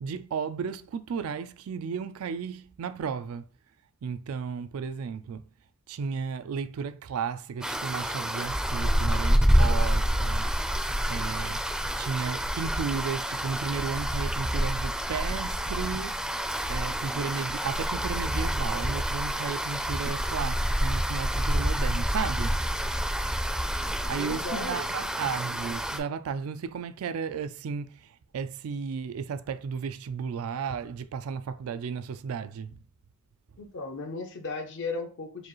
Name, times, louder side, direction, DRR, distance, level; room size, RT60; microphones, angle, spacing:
voice 1, 0.0-3.5 4.0-5.4 5.9-10.5 11.1-11.6 12.0-16.1 16.7-22.6 24.1-32.8, right 6 dB, 80° right, 0.4 m, -34 dB
sound 1, 7.6-26.0, equal, 5° right, 0.4 m, -28 dB
voice 2, 24.0-24.9 33.6-35.5, left 3 dB, 60° left, 0.6 m, -36 dB
4.7 x 2.3 x 3.0 m
head